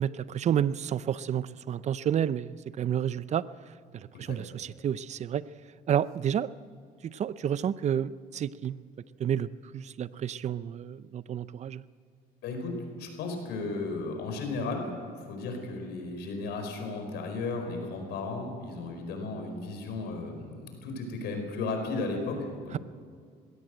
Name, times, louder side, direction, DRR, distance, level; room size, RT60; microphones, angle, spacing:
voice 1, 0.0-5.4 5.9-6.5 7.0-8.8 9.2-11.8, right 9 dB, 40° right, 17 dB, 0.6 m, -30 dB
voice 2, 12.4-14.9 15.2-22.8, left 3 dB, 80° left, 4 dB, 4.7 m, -35 dB
21.0 x 17.0 x 7.7 m, 2.1 s
cardioid pair, 110°, 17 cm